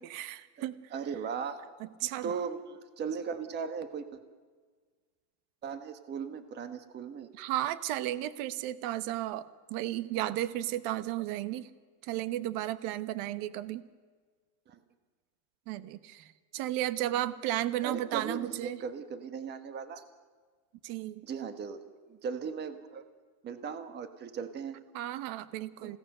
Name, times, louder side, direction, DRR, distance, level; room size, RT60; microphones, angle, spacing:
voice 1, 0.0-0.8 2.0-2.3 7.4-11.7 12.0-13.8 15.7-16.3 16.5-18.8 20.8-21.2 24.9-26.0, right 14 dB, 45° right, 14 dB, 1.0 m, -34 dB
voice 2, 0.9-1.6 2.0-4.2 5.6-7.3 14.7-14.8 17.8-20.0 21.2-21.8 22.1-23.0 23.4-24.8 25.8-26.0, right 6 dB, 20° right, 9 dB, 1.3 m, -38 dB
29.5 x 17.5 x 6.7 m, 1.5 s
supercardioid pair, 155°, 49 cm